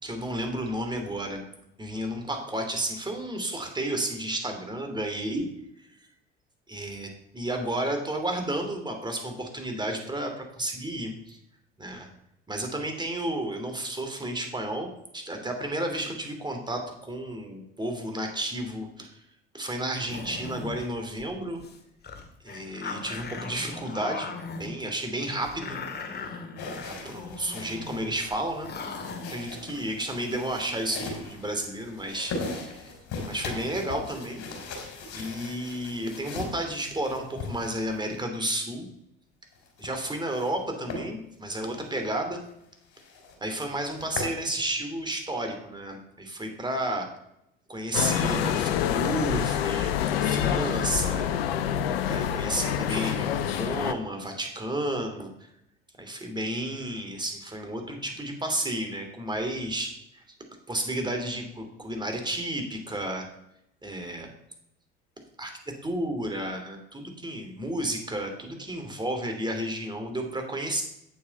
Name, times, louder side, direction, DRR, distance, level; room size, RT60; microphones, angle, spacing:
voice 1, 0.0-1.4 1.8-5.4 6.7-11.4 11.8-12.1 12.5-14.9 15.1-19.1 19.5-21.6 22.4-25.8 26.8-28.7 29.3-32.9 33.2-34.4 35.1-38.9 39.8-42.4 43.4-47.1 47.7-51.3 52.1-55.3 56.0-60.2 60.7-63.3 63.8-64.3 65.4-65.5 65.8-70.8, right 1 dB, 15° right, 4 dB, 2.8 m, -32 dB
sound 1, 20.1-20.9 21.2-21.3 21.6-21.8 22.0-24.7 25.4-28.0 28.3-28.4 28.6-29.3, left 4 dB, 35° left, 1.9 m, -39 dB
sound 2, 26.6-38.2 39.5-40.6 40.9-41.1 41.6-41.7 42.1-42.2 42.5-42.6 42.9-43.4 43.7-44.4, left 3 dB, 60° left, 3.3 m, -39 dB
sound 3, 47.9-53.9, left 9 dB, 80° left, 0.8 m, -27 dB
8.7 x 7.2 x 5.4 m, 0.80 s
hypercardioid pair, 65°, 30 cm